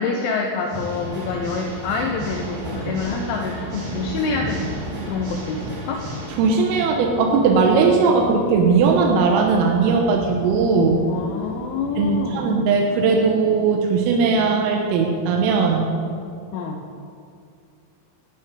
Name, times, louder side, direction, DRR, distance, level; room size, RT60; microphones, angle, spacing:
voice 1, 0.0-4.7 5.1-6.1 11.1-12.6 16.5-16.8, left 4 dB, 80° left, 1 dB, 3.0 m, -27 dB
Water / Mechanisms, 0.6-6.6, right 1 dB, 50° right, 3.9 m, -39 dB
sound 1, 0.7-12.3, right 1 dB, 70° right, 4.6 m, -34 dB
voice 2, 6.4-11.1 12.0-15.9, right 4 dB, 90° right, 1 dB, 3.7 m, -18 dB
17.5 x 8.9 x 5.2 m, 2.4 s
omnidirectional pair, 5.8 m